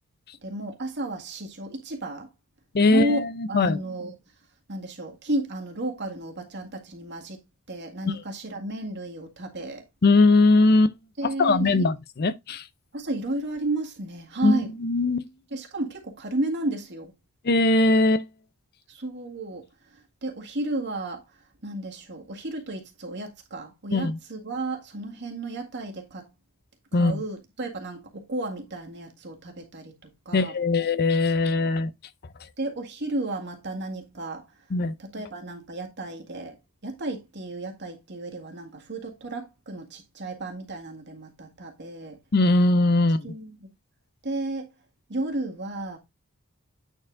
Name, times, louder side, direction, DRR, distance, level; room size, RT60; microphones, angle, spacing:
voice 1, 0.4-2.3 2.8-4.1 4.7-7.4 7.7-9.8 11.2-11.8 12.9-14.7 15.5-17.1 18.9-19.6 20.2-21.2 21.6-26.3 26.9-29.9 30.3-30.5 32.6-34.4 35.0-36.6 36.8-42.2 43.2-43.5 44.2-44.7 45.1-46.0, right 2 dB, 50° right, 1.8 m, -33 dB
voice 2, 2.7-3.8 10.0-11.0 11.2-12.6 14.4-15.3 17.4-18.2 23.9-24.2 26.9-27.2 30.3-31.9 34.7-34.9 42.3-43.3, left 2 dB, 45° left, 0.6 m, -20 dB
9.1 x 4.3 x 3.7 m
head